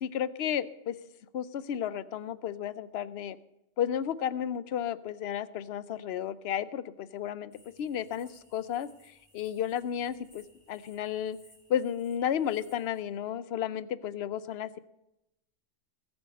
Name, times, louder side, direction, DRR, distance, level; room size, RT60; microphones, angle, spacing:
voice 1, 0.0-0.9 1.3-3.4 3.8-7.5 7.8-8.9 9.3-11.4 11.7-14.8, left 9 dB, 60° left, 16 dB, 0.8 m, -33 dB
sound 1, 7.5-13.0, equal, 15° left, 5.3 m, -62 dB
21.5 x 8.3 x 5.2 m, 0.88 s
omnidirectional pair, 1.3 m